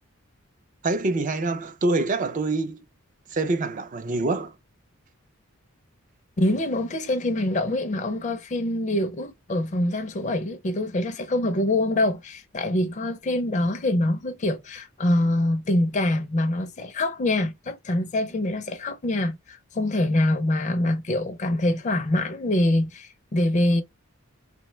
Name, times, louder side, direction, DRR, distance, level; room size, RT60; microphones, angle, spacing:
voice 1, 0.8-2.8 3.3-4.5, right 2 dB, 35° right, 0.4 m, -25 dB
voice 2, 6.4-23.8, left 1 dB, 35° left, 0.4 m, -25 dB
2.9 x 2.1 x 3.1 m
head